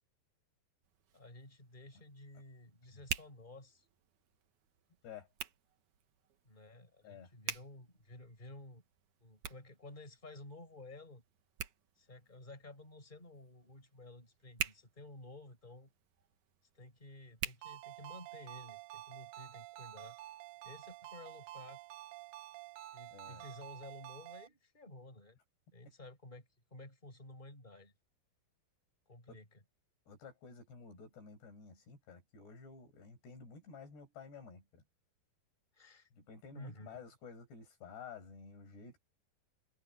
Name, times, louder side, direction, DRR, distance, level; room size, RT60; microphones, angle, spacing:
Hands, 0.8-18.5, right 9 dB, 55° right, 2.6 m, -48 dB
voice 1, 1.1-3.9 6.4-8.8 9.2-11.2 12.0-15.9 16.7-20.2 20.6-21.8 22.9-25.4 25.7-27.9 29.1-29.5 35.7-36.1 36.5-37.0, left 2 dB, 10° left, 6.0 m, -53 dB
Ringtone, 17.6-24.5, right 15 dB, 75° right, 1.8 m, -50 dB
voice 2, 23.1-23.4 29.3-29.4 30.1-34.8 36.1-39.0, left 5 dB, 80° left, 8.9 m, -52 dB
omnidirectional pair, 4.7 m